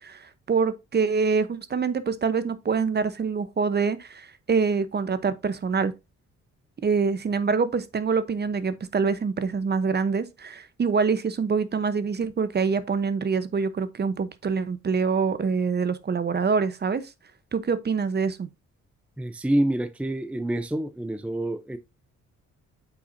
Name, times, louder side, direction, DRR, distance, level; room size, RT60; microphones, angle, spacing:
voice 1, 0.0-5.9 6.8-17.1 17.5-18.5, right 5 dB, 35° right, 0.9 m, -25 dB
voice 2, 19.2-21.8, right 1 dB, 5° right, 0.6 m, -27 dB
8.0 x 5.8 x 2.7 m
cardioid pair, 90°, 30 cm